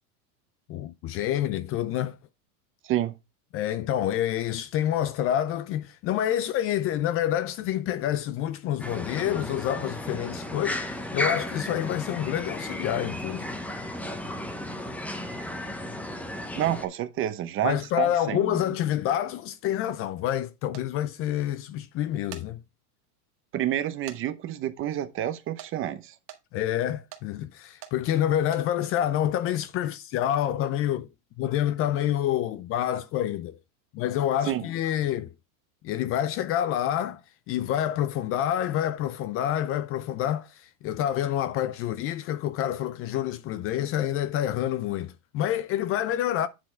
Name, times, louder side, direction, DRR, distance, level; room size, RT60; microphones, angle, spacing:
voice 1, 0.7-2.2 3.5-13.5 17.6-22.6 26.5-31.1 31.4-33.6 33.9-35.3 35.8-37.2 37.5-46.5, left 11 dB, 30° left, 0.5 m, -27 dB
sound 1, 8.8-16.9, left 1 dB, 5° left, 0.9 m, -34 dB
voice 2, 16.6-18.6 23.5-26.1 34.5-34.6, right 12 dB, 30° right, 0.7 m, -29 dB
sound 2, 20.7-20.9 22.1-22.5 23.0-23.1 24.1-24.2 24.5-24.6 25.6-25.7 26.3-26.4 27.1-27.3 27.8-28.0 28.4-28.7, right 11 dB, 45° right, 1.8 m, -43 dB
9.4 x 4.3 x 4.4 m
supercardioid pair, 135°, 45 cm